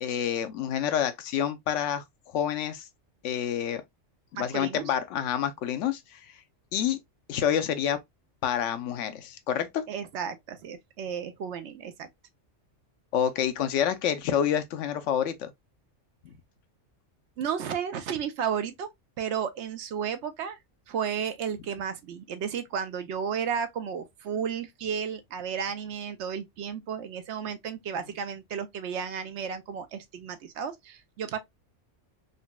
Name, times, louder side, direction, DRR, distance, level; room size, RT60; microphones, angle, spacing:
voice 1, 0.0-2.8 3.2-3.8 4.3-6.2 6.7-7.0 7.3-8.0 8.4-9.8 13.1-15.5 16.2-16.3, left 9 dB, 80° left, 0.9 m, -28 dB
voice 2, 4.3-4.9 9.9-12.1 17.4-18.9 19.2-20.6 20.9-31.4, right 7 dB, 75° right, 0.9 m, -33 dB
3.9 x 2.1 x 2.2 m
omnidirectional pair, 1.2 m